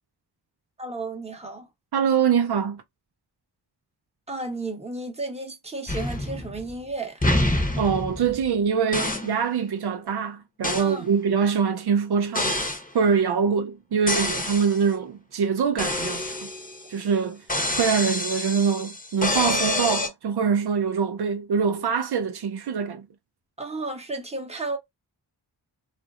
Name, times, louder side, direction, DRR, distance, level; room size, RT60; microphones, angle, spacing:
voice 1, 0.8-1.7 4.3-7.2 10.8-11.1 23.6-24.8, right 2 dB, 15° right, 0.9 m, -33 dB
voice 2, 1.9-2.8 7.8-12.6 12.9-16.5 16.9-17.4 17.7-23.1, right 6 dB, 70° right, 0.5 m, -24 dB
sound 1, 5.9-6.8 7.2-8.5 8.9-9.4 10.6-10.9 12.3-12.9 14.1-14.8 15.8-16.9 17.5-20.1, left 1 dB, 20° left, 0.9 m, -27 dB
2.8 x 2.5 x 2.3 m
wide cardioid pair, 100°, 40 cm